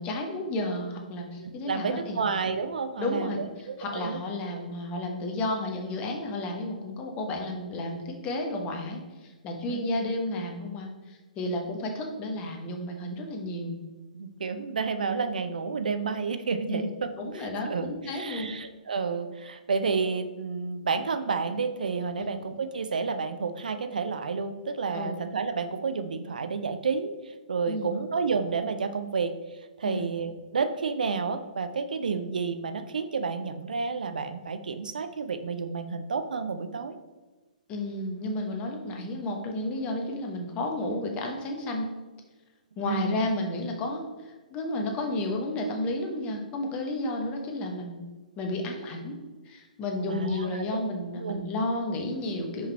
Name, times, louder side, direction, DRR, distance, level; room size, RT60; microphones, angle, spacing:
voice 1, 0.0-2.2 3.0-13.8 16.7-16.9 17.2-18.5 22.2-22.3 24.9-25.1 27.7-28.0 29.8-30.1 37.7-41.9 42.8-48.0 48.4-49.2 49.4-52.7, left 1 dB, 25° left, 2 dB, 1.1 m, -32 dB
voice 2, 1.4-4.2 4.5-4.6 9.7-9.8 11.4-11.6 14.1-17.1 17.3-27.1 27.5-29.3 29.8-37.0 42.8-43.2 50.1-50.8 51.2-51.4, right 5 dB, 70° right, 9 dB, 0.5 m, -30 dB
5.8 x 5.2 x 3.3 m, 1.2 s
figure-of-eight pair, 125°, 5 cm